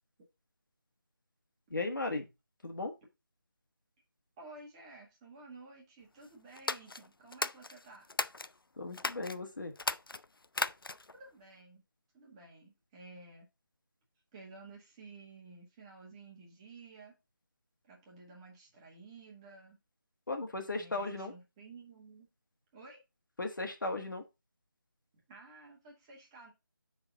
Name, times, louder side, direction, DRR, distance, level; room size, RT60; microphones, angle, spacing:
voice 1, 1.7-2.3 2.6-2.9 8.8-9.7 20.3-21.3 23.4-24.2, left 2 dB, 65° left, 1.7 m, -36 dB
voice 2, 4.4-8.1 11.1-11.8 12.1-13.5 14.3-17.1 17.8-19.8 20.8-22.3 22.7-23.0 25.1-26.5, right 3 dB, 15° right, 1.7 m, -53 dB
sound 1, 6.5-8.5 8.9-9.4 9.7-11.2, left 3 dB, 85° left, 0.5 m, -36 dB
8.8 x 4.0 x 3.9 m
figure-of-eight pair, 160°, 11 cm